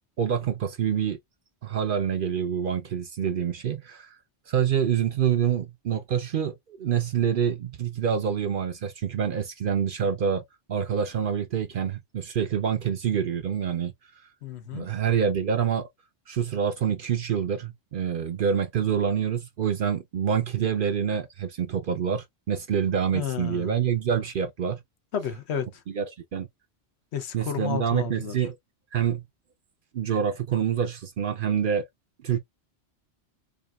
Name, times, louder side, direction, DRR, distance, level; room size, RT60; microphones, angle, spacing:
voice 1, 0.2-1.2 1.6-4.2 4.5-6.5 6.8-10.4 10.7-13.9 14.7-15.9 16.3-24.8 25.9-26.5 27.3-28.6 28.9-29.2 29.9-31.9 32.2-32.4, right 8 dB, 60° right, 0.6 m, -26 dB
voice 2, 14.4-14.9 23.1-23.8 25.1-25.8 27.1-28.4, left 8 dB, 70° left, 1.0 m, -32 dB
5.0 x 2.4 x 2.3 m
omnidirectional pair, 1.2 m